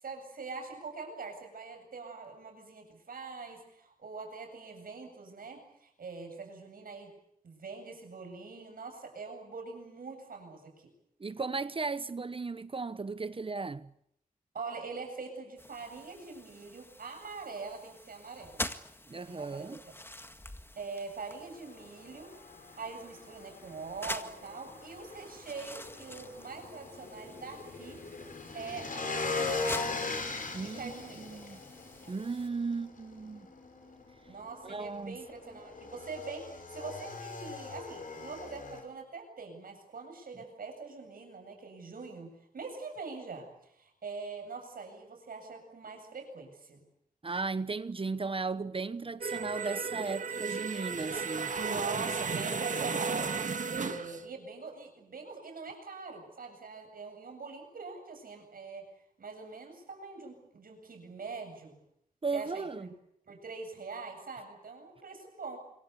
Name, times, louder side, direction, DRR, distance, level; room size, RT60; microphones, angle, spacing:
voice 1, 0.0-7.1 7.4-10.9 14.5-18.7 19.3-19.9 20.8-22.4 22.8-28.0 28.5-30.0 30.6-31.4 34.3-46.8 51.6-58.9 59.2-61.8 62.3-62.9 63.3-65.6, right 4 dB, 80° right, 8.0 m, -43 dB
voice 2, 11.2-13.9 19.1-19.8 30.5-31.6 32.1-33.5 34.6-35.2 47.2-51.6 62.2-62.9, right 4 dB, 40° right, 1.0 m, -36 dB
sound 1, 15.6-32.5, left 1 dB, 15° left, 1.8 m, -46 dB
Motorcycle / Engine, 21.4-38.8, left 3 dB, 65° left, 6.9 m, -40 dB
sound 2, 49.2-54.2, right 5 dB, 60° right, 1.9 m, -34 dB
26.5 x 23.5 x 8.4 m
cardioid pair, 70°, 15 cm